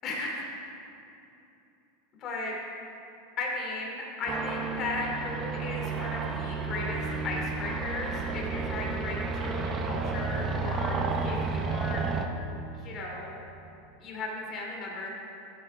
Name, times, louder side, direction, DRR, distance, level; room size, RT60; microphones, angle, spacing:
voice 1, 0.0-0.4 2.2-2.5 3.4-11.0 11.2-12.0 12.8-13.4 14.0-15.1, left 2 dB, 40° left, -2 dB, 2.7 m, -35 dB
sound 1, 4.3-12.3, right 4 dB, 30° right, 0.8 m, -32 dB
15.0 x 8.3 x 3.5 m, 2.8 s
supercardioid pair, 130°, 0 cm